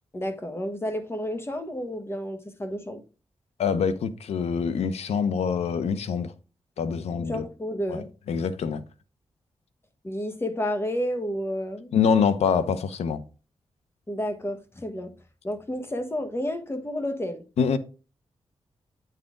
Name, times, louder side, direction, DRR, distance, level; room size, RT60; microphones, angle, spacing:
voice 1, 0.1-3.0 7.1-8.1 10.0-11.9 14.1-15.1 15.4-17.4, equal, 25° left, 1.3 m, -31 dB
voice 2, 3.6-6.3 6.8-7.4 7.9-8.8 11.9-13.2 17.6-17.8, left 6 dB, 90° left, 0.7 m, -25 dB
8.9 x 4.1 x 3.7 m
cardioid pair, 75°, 11 cm